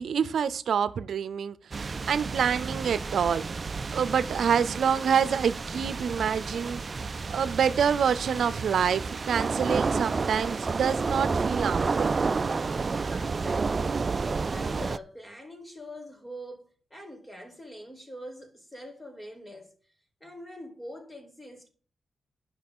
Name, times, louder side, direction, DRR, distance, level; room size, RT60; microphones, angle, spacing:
voice 1, 0.0-3.4 3.9-6.8 7.3-12.1, right 7 dB, 75° right, 0.6 m, -27 dB
sound 1, 1.7-15.0, right 4 dB, 35° right, 0.3 m, -30 dB
voice 2, 12.9-19.8 20.2-21.7, equal, 15° left, 1.9 m, -44 dB
10.5 x 5.7 x 5.4 m
wide cardioid pair, 115°, 0 cm